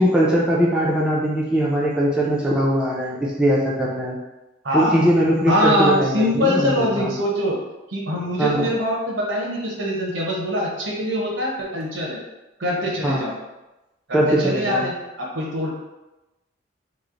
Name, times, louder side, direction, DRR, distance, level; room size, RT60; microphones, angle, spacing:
voice 1, 0.0-4.2 4.7-7.1 8.4-8.7 13.0-13.3 14.1-14.9, equal, 5° right, -4 dB, 0.4 m, -20 dB
voice 2, 4.6-5.1 5.5-7.6 7.9-12.2 12.6-13.3 14.1-15.7, equal, 80° right, -2 dB, 0.9 m, -23 dB
3.1 x 2.0 x 3.7 m, 1.0 s
head